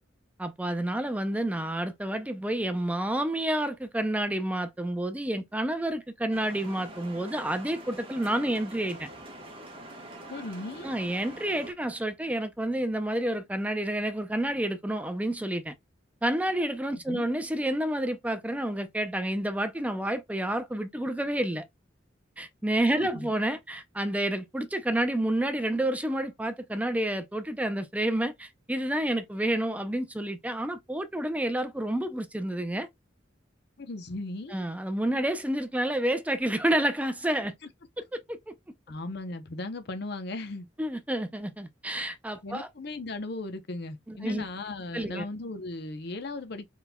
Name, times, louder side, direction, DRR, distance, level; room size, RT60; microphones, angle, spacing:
voice 1, 0.4-9.1 10.8-15.7 16.2-21.6 22.4-32.9 34.5-37.5 38.1-38.5 40.8-42.7 44.1-44.5 44.9-45.3, right 1 dB, 10° right, 0.4 m, -29 dB
sound 1, 6.3-11.7, right 1 dB, 30° right, 1.2 m, -45 dB
voice 2, 10.3-10.9 17.1-17.3 22.9-23.3 33.8-34.6 37.6-37.7 38.9-40.7 42.4-46.7, left 2 dB, 60° left, 0.7 m, -37 dB
4.2 x 4.0 x 2.2 m
head